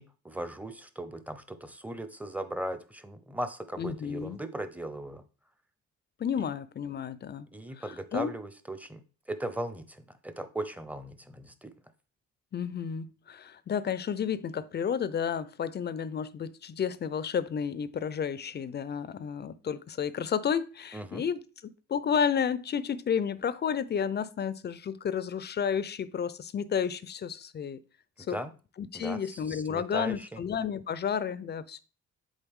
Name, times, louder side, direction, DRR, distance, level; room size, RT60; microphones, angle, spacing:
voice 1, 0.0-5.2 7.5-11.7 20.9-21.2 28.3-28.5 28.9-30.4, right 1 dB, 5° right, 0.6 m, -38 dB
voice 2, 3.8-4.4 6.2-7.5 7.8-8.3 12.5-21.4 21.9-27.8 28.3-28.4 28.8-31.8, left 7 dB, 35° left, 0.5 m, -31 dB
7.1 x 4.1 x 3.6 m
cardioid pair, 90°, 30 cm